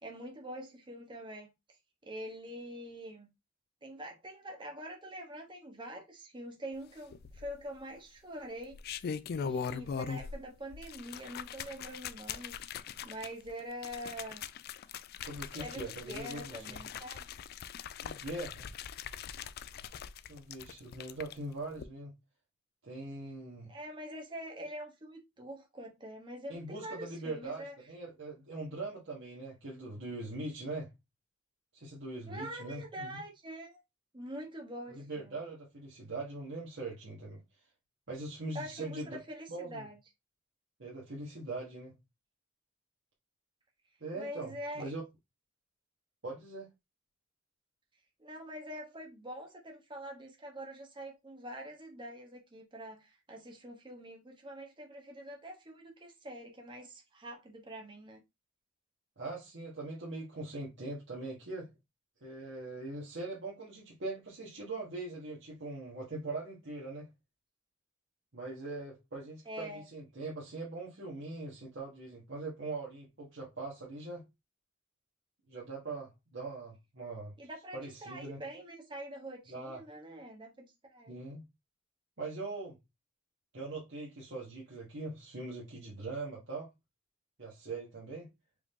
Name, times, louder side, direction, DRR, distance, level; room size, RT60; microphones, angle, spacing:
voice 1, 0.0-1.5 2.0-3.3 3.8-8.8 9.4-12.6 13.0-14.4 15.6-17.2 23.7-27.8 32.2-33.8 34.1-35.3 38.5-39.9 44.1-44.9 48.2-58.2 69.5-69.8 77.4-81.3, equal, 25° right, 0.9 m, -45 dB
sound 1, 7.1-7.8 8.6-10.4 10.7-21.3 21.7-21.8, left 7 dB, 50° left, 0.3 m, -41 dB
voice 2, 15.2-16.8 18.0-18.7 20.3-22.1 22.8-23.7 26.5-30.9 31.7-33.2 34.9-37.4 38.1-39.2 39.5-39.9 40.8-41.9 44.0-45.0 46.2-46.7 59.2-61.7 62.2-67.1 68.3-74.2 75.5-77.3 77.7-78.4 79.5-79.8 81.1-81.4 82.2-82.8 83.5-86.7 87.4-88.3, right 2 dB, 65° right, 1.3 m, -41 dB
4.8 x 2.8 x 3.6 m
head